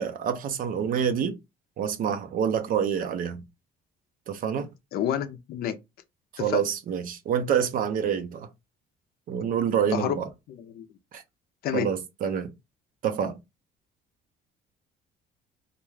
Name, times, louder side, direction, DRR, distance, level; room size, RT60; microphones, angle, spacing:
voice 1, 0.0-1.4 1.8-3.4 4.3-4.7 6.3-8.5 9.3-10.3 11.1-11.2 11.7-12.5 13.0-13.4, right 8 dB, 55° right, 0.5 m, -27 dB
voice 2, 4.9-5.8 6.4-6.6 9.9-10.2 10.5-10.8 11.6-11.9, left 10 dB, 65° left, 0.5 m, -29 dB
2.4 x 2.3 x 3.2 m
cardioid pair, 110°, 17 cm